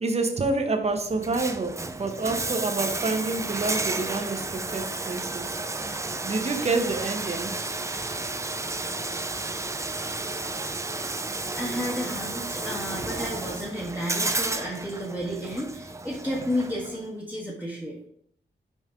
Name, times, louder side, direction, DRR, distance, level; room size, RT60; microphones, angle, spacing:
voice 1, 0.0-5.6 6.2-7.5, right 3 dB, 35° right, 0.9 m, -28 dB
Bathtub (filling or washing), 1.1-17.1, right 2 dB, 15° right, 0.4 m, -32 dB
voice 2, 11.6-18.0, equal, 10° left, 1.4 m, -32 dB
5.5 x 5.2 x 3.6 m
wide cardioid pair, 110°, 19 cm